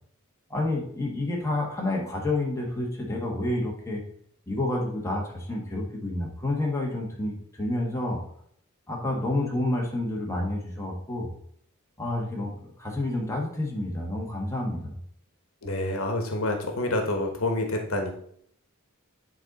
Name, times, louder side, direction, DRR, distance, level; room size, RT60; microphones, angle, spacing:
voice 1, 0.5-4.0 4.5-8.2 8.9-11.3 12.0-15.0, left 1 dB, 15° left, -2 dB, 1.5 m, -29 dB
voice 2, 15.6-18.2, left 2 dB, 75° left, 4 dB, 1.2 m, -28 dB
9.5 x 4.0 x 4.1 m, 0.64 s
head